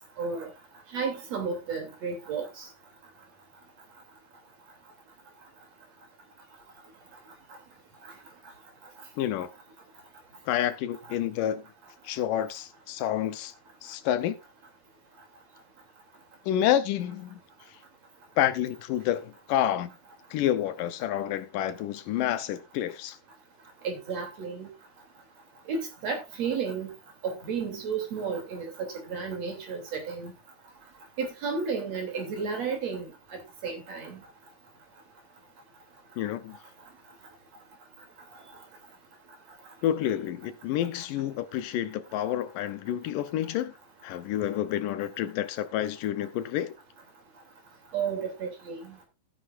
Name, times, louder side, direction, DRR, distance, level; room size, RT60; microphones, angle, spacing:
voice 1, 0.2-0.5 0.9-2.7 23.8-24.7 25.7-26.9 27.2-30.3 31.2-33.1 33.6-34.2 47.9-49.0, right 5 dB, 50° right, 3.9 m, -32 dB
voice 2, 9.2-9.5 10.5-11.6 12.0-13.5 13.8-14.4 16.5-17.4 18.4-19.9 20.3-23.2 36.2-36.6 39.8-43.7 44.0-46.7, left 11 dB, 75° left, 2.4 m, -29 dB
15.0 x 9.5 x 2.5 m
omnidirectional pair, 4.1 m